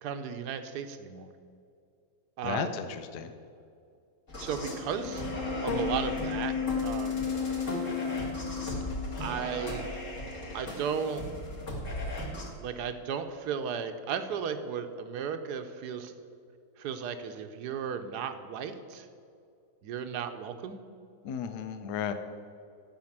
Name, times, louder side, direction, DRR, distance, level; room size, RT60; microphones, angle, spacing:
voice 1, 0.0-1.3 2.4-2.8 4.4-5.2 5.6-6.6 6.8-7.3 9.2-9.9 10.5-11.3 12.6-16.1 16.8-19.1 19.8-20.8, right 7 dB, 70° right, 8 dB, 1.3 m, -35 dB
voice 2, 2.4-3.3 21.2-22.1, left 7 dB, 70° left, 9 dB, 1.2 m, -34 dB
sound 1, 4.3-12.5, left 4 dB, 45° left, 2.3 m, -34 dB
12.0 x 5.6 x 7.3 m, 2.4 s
omnidirectional pair, 1.9 m